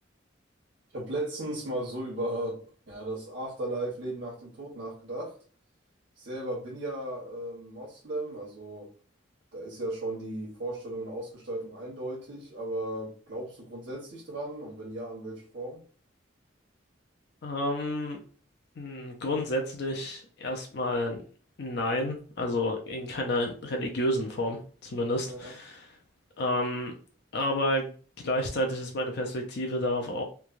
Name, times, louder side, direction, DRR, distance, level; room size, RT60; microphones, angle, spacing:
voice 1, 0.9-5.4 6.2-8.9 9.5-15.8 25.2-25.5, right 1 dB, 75° right, 1.0 m, -36 dB
voice 2, 17.4-18.2 18.8-21.2 21.6-25.9 26.4-26.9 27.3-27.9 28.2-30.2, left 1 dB, 60° left, 0.5 m, -30 dB
3.1 x 2.2 x 2.4 m
head